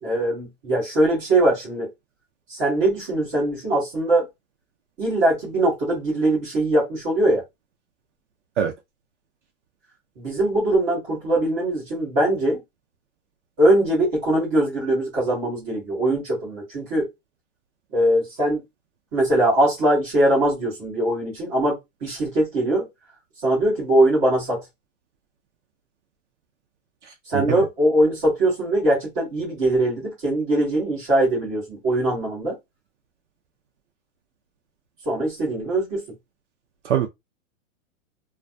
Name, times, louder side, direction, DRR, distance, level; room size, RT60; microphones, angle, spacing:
voice 1, 0.0-1.9 2.5-4.3 5.0-7.4 10.2-12.6 13.6-17.1 17.9-18.6 19.1-22.9 23.4-24.6 27.3-32.6 35.1-36.0, right 1 dB, 10° right, 0.5 m, -21 dB
voice 2, 27.0-27.7 36.8-37.1, right 9 dB, 55° right, 0.5 m, -24 dB
2.2 x 2.2 x 2.5 m
hypercardioid pair, 170°, 42 cm